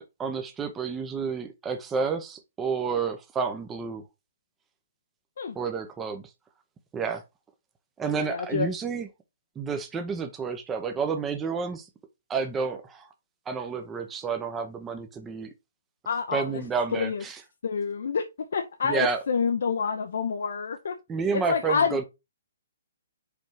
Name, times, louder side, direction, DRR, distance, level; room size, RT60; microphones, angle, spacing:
voice 1, 0.0-4.0 5.5-6.2 6.9-7.2 8.0-9.1 9.6-11.9 12.3-13.1 13.5-15.5 16.3-17.4 18.8-19.2 21.1-22.0, right 5 dB, 10° right, 0.8 m, -30 dB
voice 2, 8.3-8.7 16.1-16.6 16.9-17.2 17.6-18.3 18.5-21.0 21.3-22.0, left 6 dB, 70° left, 0.8 m, -27 dB
5.2 x 4.3 x 4.6 m
hypercardioid pair, 160°, 0 cm